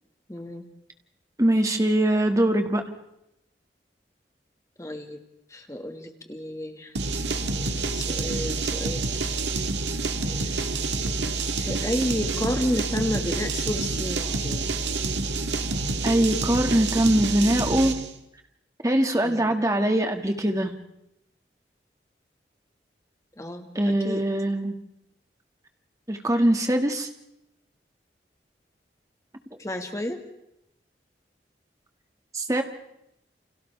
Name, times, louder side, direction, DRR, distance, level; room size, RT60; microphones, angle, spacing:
voice 1, 0.3-0.7 4.8-5.2 5.5-6.9 7.3-9.4 10.2-11.3 11.6-14.7 19.2-19.6 23.4-24.3 29.6-30.2, left 1 dB, 15° left, 5 dB, 1.7 m, -32 dB
voice 2, 1.4-2.8 16.0-17.9 18.8-20.7 23.8-24.8 26.1-27.1 32.3-32.6, right 1 dB, 20° right, 4 dB, 1.9 m, -22 dB
sound 1, 7.0-18.1, right 3 dB, 85° right, 1.6 m, -28 dB
30.0 x 27.5 x 3.4 m, 0.83 s
head